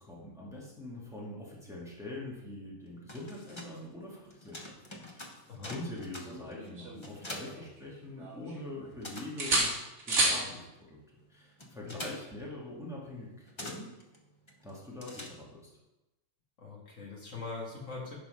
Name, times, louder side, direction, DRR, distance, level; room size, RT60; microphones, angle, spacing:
voice 1, 0.0-5.4 5.7-9.8 10.1-11.0 11.3-13.9 14.6-15.7, left 2 dB, ahead, -5 dB, 1.9 m, -44 dB
sound 1, 2.8-8.4 8.7-15.8, left 1 dB, 25° left, 0.9 m, -47 dB
sound 2, 6.3-7.8 8.2-9.0 9.4-10.5 12.3-12.5, right 2 dB, 60° right, 1.8 m, -31 dB
voice 2, 16.6-18.1, left 3 dB, 65° left, -2 dB, 2.1 m, -42 dB
10.5 x 4.3 x 5.5 m, 1.0 s
omnidirectional pair, 1.4 m